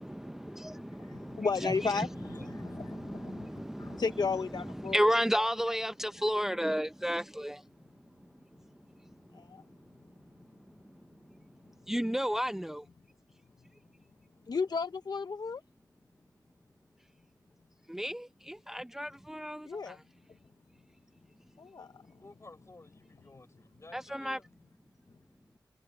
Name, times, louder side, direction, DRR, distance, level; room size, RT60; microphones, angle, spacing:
voice 1, 0.0-2.1 2.4-4.0 4.6-7.7 9.0-9.1 11.9-12.9 17.9-20.0 23.9-24.4, equal, 5° right, 0.6 m, -33 dB
voice 2, 1.0-3.5 3.8-5.1 9.3-9.6 14.5-15.6 19.7-20.0 21.6-21.9, left 4 dB, 70° left, 0.7 m, -34 dB
voice 3, 2.3-2.8 22.2-24.5, left 2 dB, 40° left, 5.6 m, -55 dB
wide cardioid pair, 60°, 7 cm